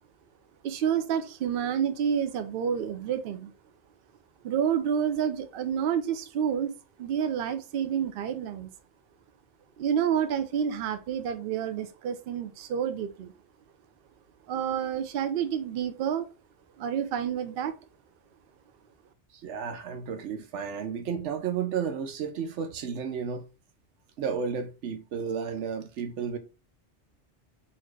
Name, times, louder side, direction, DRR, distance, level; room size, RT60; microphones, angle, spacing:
voice 1, 0.6-3.5 4.4-6.7 7.0-8.7 9.8-13.3 14.5-16.3 16.8-17.7, right 8 dB, 60° right, 0.7 m, -29 dB
voice 2, 19.4-23.4 24.2-26.4, right 7 dB, 80° right, 1.0 m, -32 dB
4.1 x 2.5 x 3.1 m
omnidirectional pair, 1.2 m